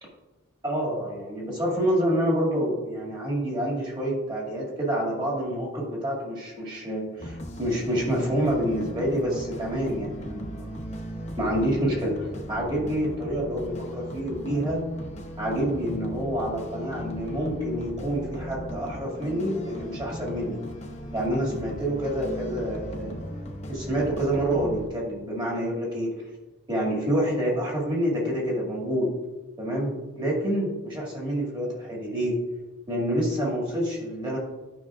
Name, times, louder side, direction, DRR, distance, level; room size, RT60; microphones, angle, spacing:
voice 1, 0.6-10.7 11.4-14.9 15.4-20.6 21.1-23.2 23.7-26.1 26.7-29.1 29.6-32.4 32.9-34.4, equal, 20° right, -3 dB, 2.2 m, -27 dB
sound 1, 7.2-24.9, equal, 30° left, 0.9 m, -37 dB
12.0 x 5.5 x 2.5 m, 1.1 s
head